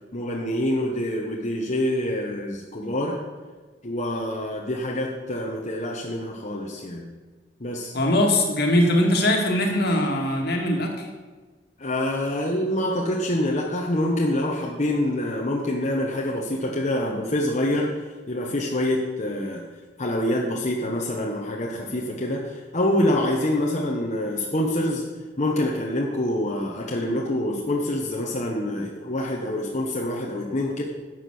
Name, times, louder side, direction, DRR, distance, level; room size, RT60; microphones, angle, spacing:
voice 1, 0.1-3.2 3.8-7.0 7.6-7.9 11.8-17.9 18.3-19.6 20.0-25.0 25.4-30.8, left 1 dB, 40° left, -2 dB, 1.2 m, -26 dB
voice 2, 7.9-10.9, left 1 dB, 65° left, 1 dB, 2.1 m, -21 dB
11.5 x 7.6 x 6.2 m, 1.4 s
head